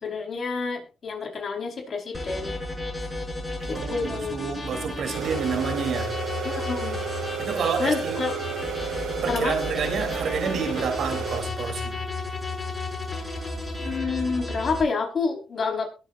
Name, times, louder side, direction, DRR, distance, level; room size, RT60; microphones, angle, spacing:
voice 1, 0.0-2.6 3.7-4.3 6.4-7.0 7.8-8.4 9.3-9.6 13.8-15.8, left 4 dB, 45° left, 4.9 m, -28 dB
sound 1, 2.1-14.8, left 2 dB, 20° left, 7.2 m, -33 dB
voice 2, 3.7-6.1 7.4-8.2 9.2-12.0, right 6 dB, 65° right, 3.6 m, -29 dB
sound 2, 5.1-11.4, right 7 dB, 80° right, 4.6 m, -32 dB
21.5 x 8.0 x 2.7 m
cardioid pair, 90°, 0 cm